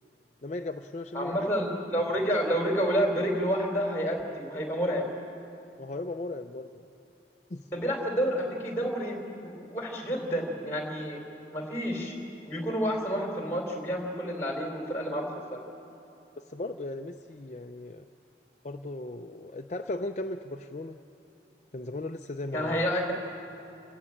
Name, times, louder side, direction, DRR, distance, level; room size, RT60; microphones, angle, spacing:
voice 1, 0.4-1.5 5.8-6.9 7.5-7.7 16.4-18.1 18.6-21.0 21.7-22.9, left 2 dB, 40° left, 5 dB, 0.5 m, -37 dB
voice 2, 1.1-5.1 7.7-11.2 11.5-12.2 12.5-15.6 22.5-23.1, equal, 15° left, 1 dB, 3.7 m, -29 dB
29.0 x 13.5 x 8.8 m, 2.8 s
head